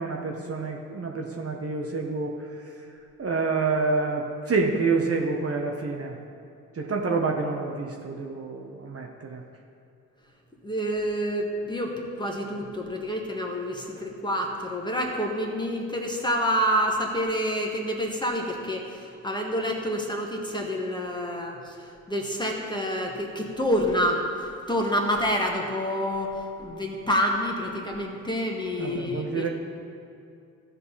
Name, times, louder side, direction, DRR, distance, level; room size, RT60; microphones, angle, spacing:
voice 1, 0.0-2.3 3.2-6.2 6.7-9.4 28.8-29.5, right 4 dB, 35° right, 1 dB, 1.2 m, -28 dB
voice 2, 10.6-29.5, equal, 10° left, 1 dB, 1.8 m, -28 dB
15.5 x 5.4 x 4.2 m, 2.5 s
figure-of-eight pair, 45°, 43 cm